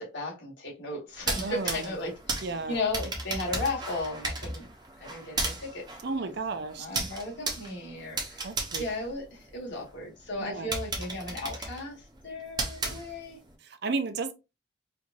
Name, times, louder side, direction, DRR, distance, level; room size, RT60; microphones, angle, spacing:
voice 1, 0.0-2.1 2.4-4.7 5.0-5.9 6.2-6.3 6.8-8.5 8.8-13.4, left 2 dB, 65° left, 1.7 m, -35 dB
sound 1, 1.1-9.9 10.3-10.4 10.7-13.5, right 2 dB, 20° right, 0.8 m, -35 dB
voice 2, 1.4-1.9 2.4-2.8 6.0-6.9 8.4-8.8 10.4-10.7 13.6-14.3, right 3 dB, 55° right, 0.5 m, -33 dB
4.5 x 2.5 x 2.6 m
head